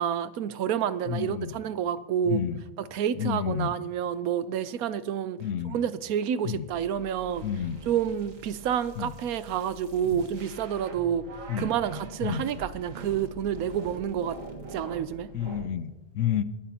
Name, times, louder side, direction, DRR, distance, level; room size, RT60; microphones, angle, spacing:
voice 1, 0.0-2.4 2.8-5.4 5.7-7.5 7.9-11.3 11.6-14.4 14.7-15.3, right 9 dB, 90° right, 14 dB, 1.1 m, -29 dB
voice 2, 1.1-1.5 2.3-2.6 3.2-3.7 5.4-5.8 6.4-6.6 7.4-7.8 9.0-9.1 10.1-10.2 11.5-11.7 12.2-12.4 15.3-16.4, left 9 dB, 65° left, 13 dB, 0.9 m, -30 dB
sound 1, 6.7-15.7, right 2 dB, 65° right, 1.9 m, -44 dB
22.0 x 11.0 x 2.8 m, 0.99 s
omnidirectional pair, 1.5 m